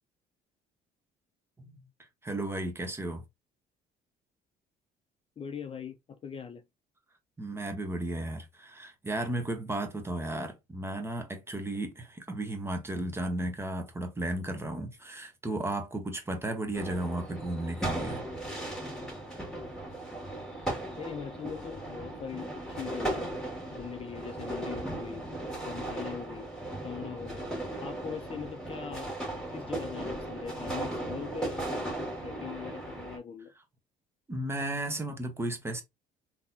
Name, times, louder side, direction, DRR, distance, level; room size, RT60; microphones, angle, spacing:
voice 1, 2.2-3.2 7.4-18.2 34.3-35.8, right 1 dB, 15° right, 1.0 m, -34 dB
voice 2, 5.4-6.6 21.0-23.4 23.7-25.2 25.6-26.5 26.8-27.5 27.8-31.9 32.2-33.5, left 7 dB, 35° left, 0.5 m, -41 dB
sound 1, 16.7-33.2, right 1 dB, 5° left, 2.1 m, -37 dB
3.8 x 2.9 x 2.6 m
cardioid pair, 110°, 17 cm